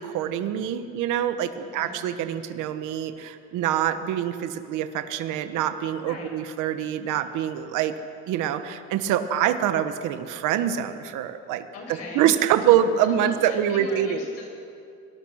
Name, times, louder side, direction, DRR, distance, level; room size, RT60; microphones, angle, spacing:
voice 1, 0.0-7.9 8.3-11.7 12.1-14.2, right 10 dB, 70° right, 9 dB, 1.3 m, -25 dB
voice 2, 1.6-2.0 6.0-6.3 11.7-14.5, left 2 dB, 50° left, 1 dB, 6.7 m, -40 dB
25.0 x 19.0 x 6.5 m, 2.5 s
cardioid pair, 140°, 32 cm